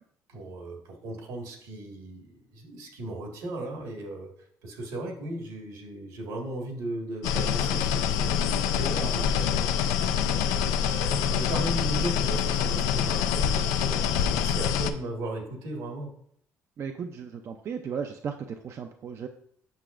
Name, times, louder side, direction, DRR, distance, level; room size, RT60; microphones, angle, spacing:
voice 1, 0.3-4.3 4.6-9.9 10.8-16.1, right 1 dB, 85° right, 1 dB, 1.7 m, -36 dB
sound 1, 7.2-14.9, left 8 dB, 85° left, 0.4 m, -26 dB
voice 2, 16.8-19.3, right 6 dB, 50° right, 5 dB, 0.5 m, -36 dB
7.8 x 5.8 x 2.5 m, 0.66 s
supercardioid pair, 85°, 6 cm